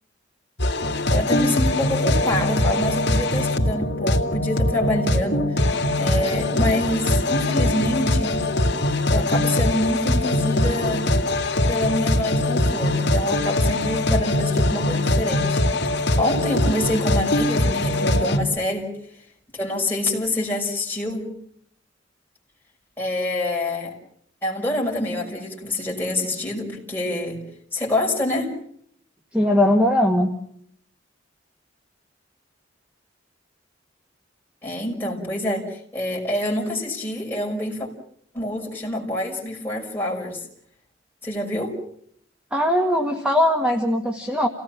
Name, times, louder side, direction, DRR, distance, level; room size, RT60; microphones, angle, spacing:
sound 1, 0.6-18.4, left 1 dB, 60° left, 2.8 m, -22 dB
voice 1, 1.1-8.4 9.1-11.1 11.7-15.6 16.2-18.9 19.5-21.3 23.0-24.0 24.4-27.4 27.7-28.5 34.6-37.9 38.3-40.4 41.2-41.8, left 1 dB, 10° left, -1 dB, 5.8 m, -26 dB
voice 2, 29.3-30.3 42.5-44.5, left 1 dB, 5° right, 3 dB, 1.8 m, -20 dB
29.5 x 18.0 x 7.4 m, 0.69 s
head